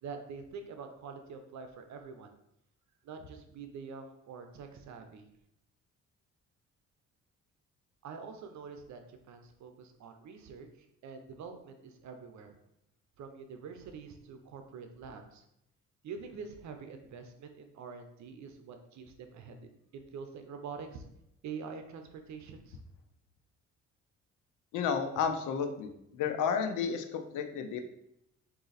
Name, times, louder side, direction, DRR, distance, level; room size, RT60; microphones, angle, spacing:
voice 1, 0.0-2.3 3.0-5.3 8.0-10.7 11.0-12.6 13.2-15.4 16.0-21.0 21.4-22.8, right 5 dB, 65° right, 6 dB, 0.7 m, -46 dB
voice 2, 24.7-27.8, left 6 dB, 85° left, 6 dB, 0.6 m, -32 dB
3.9 x 2.8 x 4.0 m, 0.79 s
cardioid pair, 90°, 30 cm